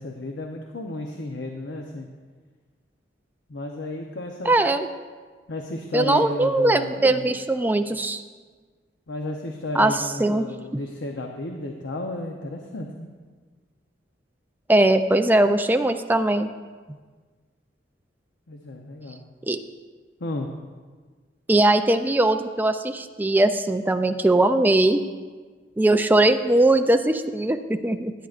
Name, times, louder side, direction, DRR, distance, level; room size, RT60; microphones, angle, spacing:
voice 1, 0.0-2.1 3.5-4.6 5.5-7.3 9.1-13.1 18.5-19.2 20.2-20.5, left 1 dB, 80° left, 2 dB, 0.8 m, -33 dB
voice 2, 4.4-4.9 5.9-8.2 9.7-10.5 10.7-10.8 14.7-16.5 19.5-19.6 21.5-25.0 25.8-28.1, right 2 dB, 10° right, 7 dB, 0.4 m, -20 dB
17.0 x 9.3 x 2.5 m, 1.5 s
head